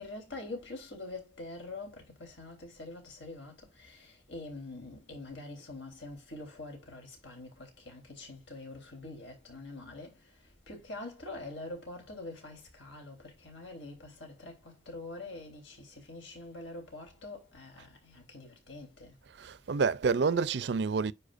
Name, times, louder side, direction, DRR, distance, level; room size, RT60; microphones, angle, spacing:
voice 1, 0.0-10.3 10.7-19.1, left 2 dB, 90° left, 3.6 m, -45 dB
voice 2, 19.4-21.1, right 5 dB, 65° right, 0.4 m, -28 dB
10.0 x 4.5 x 2.5 m
head